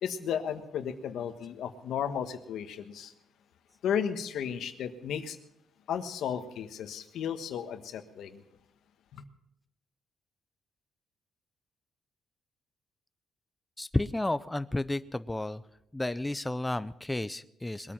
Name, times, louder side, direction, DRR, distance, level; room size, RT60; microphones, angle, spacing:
voice 1, 0.0-3.1 3.8-5.4 5.9-8.4 9.1-9.2, left 8 dB, 80° left, 9 dB, 1.4 m, -34 dB
voice 2, 13.8-15.6 15.9-17.9, left 1 dB, 10° left, 13 dB, 0.5 m, -32 dB
21.5 x 8.8 x 5.8 m, 0.81 s
cardioid pair, 110°, 0 cm